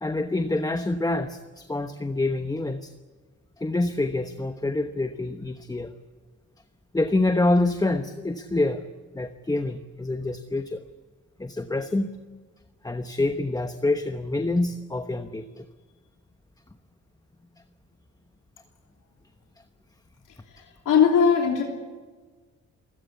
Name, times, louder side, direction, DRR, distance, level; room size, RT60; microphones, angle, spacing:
voice 1, 0.0-2.9 3.6-5.9 6.9-8.8 9.1-10.8 11.4-12.1 12.8-15.6, left 2 dB, 10° left, 8 dB, 1.1 m, -26 dB
voice 2, 20.5-21.6, left 7 dB, 70° left, 0 dB, 3.3 m, -20 dB
29.5 x 16.5 x 8.3 m, 1.4 s
cardioid pair, 85°, 32 cm